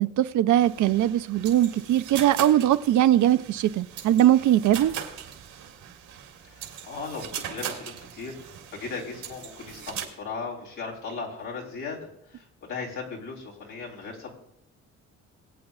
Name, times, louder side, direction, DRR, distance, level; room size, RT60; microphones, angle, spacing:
voice 1, 0.0-4.9, right 12 dB, 75° right, 0.6 m, -21 dB
sound 1, 0.6-10.0, right 9 dB, 90° right, 2.2 m, -40 dB
voice 2, 6.4-12.0 12.3-14.3, left 4 dB, 85° left, 3.6 m, -37 dB
21.0 x 8.6 x 2.4 m
cardioid pair, 90°, 30 cm